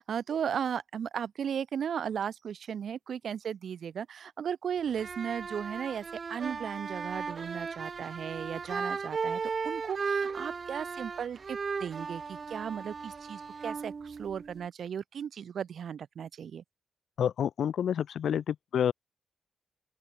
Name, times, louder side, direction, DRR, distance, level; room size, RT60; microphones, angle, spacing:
voice 1, 0.0-16.6, right 8 dB, 75° right, 2.5 m, -36 dB
sound 1, 4.9-14.7, right 5 dB, 50° right, 1.4 m, -36 dB
voice 2, 17.2-18.9, left 9 dB, 80° left, 0.8 m, -28 dB
open air
cardioid pair, 70°, 0 cm